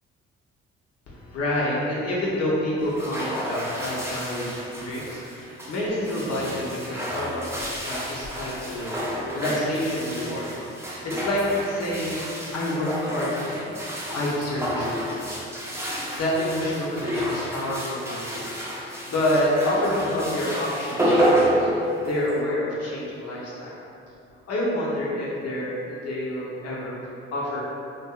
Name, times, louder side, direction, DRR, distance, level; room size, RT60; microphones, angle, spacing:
voice 1, 1.1-10.5 11.0-13.7 14.1-15.3 16.2-18.4 18.8-23.8 24.5-27.6, left 1 dB, 55° left, -6 dB, 0.8 m, -28 dB
sound 1, 2.8-22.4, equal, 10° right, 0.5 m, -30 dB
2.6 x 2.6 x 2.3 m, 2.7 s
hypercardioid pair, 55°, 29 cm